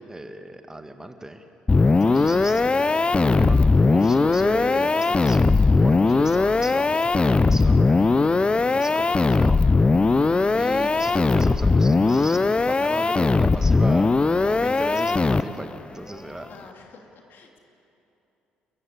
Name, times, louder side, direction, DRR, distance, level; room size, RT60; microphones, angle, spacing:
voice 1, 0.1-1.4 1.9-8.1 8.5-9.6 10.5-14.1 14.4-16.5, right 1 dB, 15° right, 7 dB, 1.7 m, -35 dB
sound 1, 1.7-15.7, left 3 dB, 25° left, 0.7 m, -19 dB
voice 2, 16.5-17.6, left 4 dB, 60° left, 2 dB, 2.9 m, -49 dB
27.5 x 15.0 x 8.6 m, 2.9 s
hypercardioid pair, 50°, 4 cm